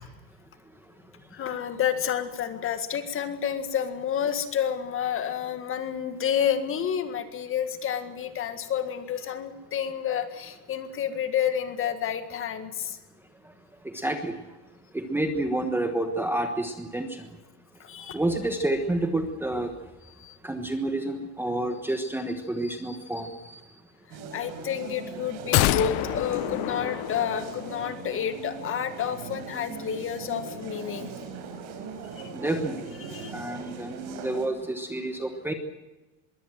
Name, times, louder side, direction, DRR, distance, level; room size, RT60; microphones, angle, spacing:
voice 1, 1.3-13.0 17.8-18.2 20.2-20.4 24.3-31.1 33.0-33.3, left 8 dB, 30° left, 9 dB, 1.9 m, -30 dB
voice 2, 13.9-14.3 14.9-17.1 18.1-19.7 20.4-23.6 32.3-32.8 33.3-35.5, right 1 dB, 5° right, 6 dB, 1.3 m, -29 dB
sound 1, 24.1-34.5, right 5 dB, 85° right, 5.2 m, -40 dB
sound 2, 25.5-27.9 28.2-28.3, left 17 dB, 55° left, 1.0 m, -27 dB
22.0 x 16.5 x 7.6 m, 1.1 s
cardioid pair, 155°, 43 cm